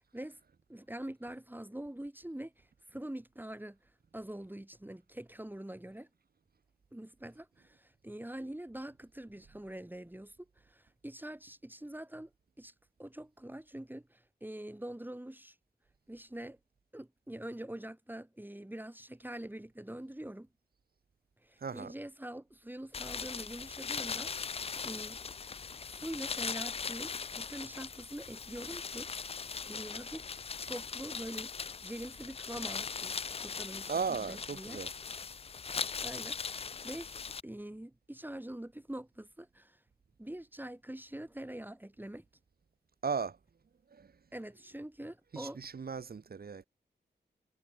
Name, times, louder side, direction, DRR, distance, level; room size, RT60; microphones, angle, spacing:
voice 1, 0.7-3.8 4.1-6.1 6.9-12.3 12.6-12.7 13.0-15.5 16.1-16.6 16.9-20.5 21.4-25.2 25.8-30.3 30.6-31.5 31.8-34.8 36.0-37.1 37.4-39.8 40.2-42.2 44.3-45.6, right 1 dB, 10° right, 5.0 m, -44 dB
voice 2, 21.6-21.9 33.9-34.9 43.0-43.4 43.9-44.1 45.3-46.6, right 5 dB, 60° right, 2.0 m, -36 dB
sound 1, 22.9-37.4, left 5 dB, 35° left, 0.4 m, -40 dB
cardioid pair, 65°, 18 cm